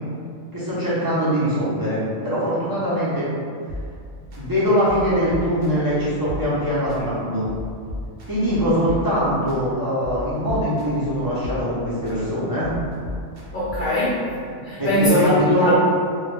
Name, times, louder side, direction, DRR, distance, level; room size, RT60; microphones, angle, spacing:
voice 1, 0.5-3.2 4.3-7.5 8.3-12.7 14.8-15.7, equal, 30° right, -11 dB, 0.4 m, -22 dB
sound 1, 3.7-4.4 4.9-5.9 6.3-7.0 7.4-9.6 10.0-11.1 11.4-12.2 12.6-14.0, left 1 dB, 75° right, 0.9 m, -35 dB
voice 2, 13.5-15.7, left 1 dB, 60° left, -9 dB, 0.6 m, -21 dB
2.2 x 2.1 x 3.1 m, 2.3 s
omnidirectional pair, 1.2 m